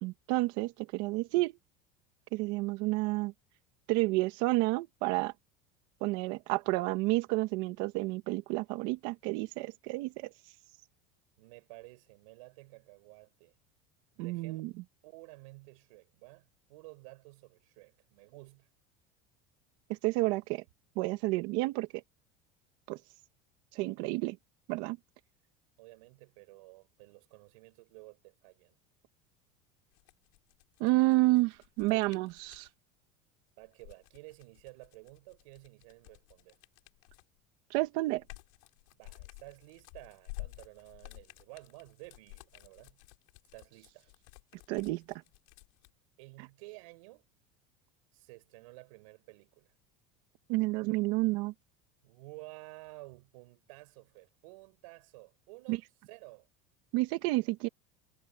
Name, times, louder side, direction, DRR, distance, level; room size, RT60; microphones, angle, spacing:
voice 1, 0.0-1.6 2.3-3.3 3.9-5.3 6.0-10.3 14.2-14.7 19.9-20.6 21.0-22.0 22.9-23.0 23.7-24.4 24.7-25.0 30.8-32.7 37.7-38.2 44.7-45.2 50.5-51.5 55.7-55.8 56.9-57.7, right 21 dB, 60° right, 1.8 m, -30 dB
voice 2, 11.4-13.5 14.1-14.6 15.0-18.7 25.8-28.8 33.6-36.6 39.0-43.0 43.5-44.1 46.2-47.2 48.1-49.7 52.0-55.8 56.1-56.5, right 24 dB, 80° right, 5.4 m, -53 dB
sound 1, 29.9-32.7 33.6-37.4 37.8-45.9, left 29 dB, 75° left, 5.6 m, -51 dB
cardioid pair, 170°, 17 cm